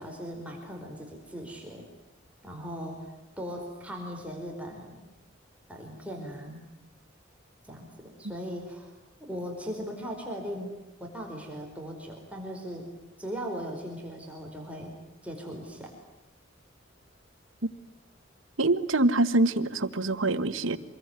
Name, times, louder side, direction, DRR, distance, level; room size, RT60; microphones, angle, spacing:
voice 1, 0.0-1.8 2.4-5.0 5.7-6.6 7.6-8.9 9.2-10.7 11.0-12.9 13.2-15.0 15.2-15.9, equal, 5° right, 0 dB, 4.7 m, -38 dB
voice 2, 18.6-20.8, right 2 dB, 90° right, 13 dB, 1.5 m, -25 dB
26.0 x 22.5 x 9.6 m, 0.98 s
head